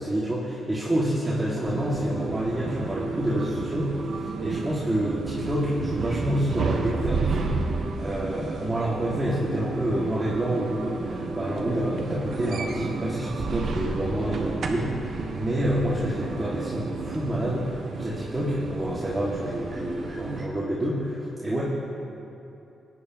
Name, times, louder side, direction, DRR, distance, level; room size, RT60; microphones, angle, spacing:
voice 1, 0.0-7.5 8.0-21.6, right 1 dB, 15° right, -8 dB, 2.2 m, -28 dB
sound 1, 1.6-20.4, right 4 dB, 65° right, 1.2 m, -31 dB
21.0 x 9.8 x 3.0 m, 2.8 s
cardioid pair, 90°, 0 cm